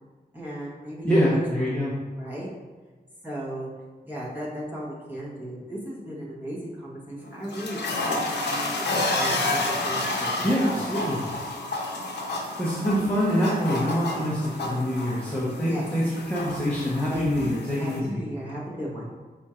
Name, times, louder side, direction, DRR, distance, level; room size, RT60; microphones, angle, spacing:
voice 1, 0.3-1.4 2.2-2.5 3.2-3.7 4.0-10.5 11.1-11.3 15.7-15.8 17.1-19.1, right 1 dB, 10° right, -7 dB, 1.1 m, -36 dB
voice 2, 1.0-1.9 10.4-11.2 12.6-18.2, equal, 10° left, -9 dB, 0.7 m, -25 dB
sound 1, 7.2-18.0, left 2 dB, 85° left, 0.6 m, -30 dB
4.4 x 2.4 x 4.2 m, 1.4 s
wide cardioid pair, 150°, 17 cm